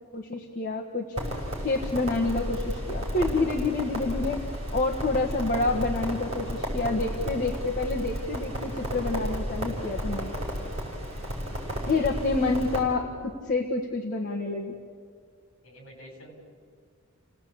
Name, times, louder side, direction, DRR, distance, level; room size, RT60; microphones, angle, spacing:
voice 1, 0.1-1.2 1.6-4.4 4.7-10.3 11.9-14.8, left 3 dB, 40° left, -1 dB, 1.6 m, -28 dB
Crackle, 1.2-12.8, equal, 30° right, 5.9 m, -33 dB
voice 2, 15.6-16.4, equal, 60° left, 3 dB, 6.2 m, -48 dB
29.5 x 17.5 x 8.6 m, 2.1 s
head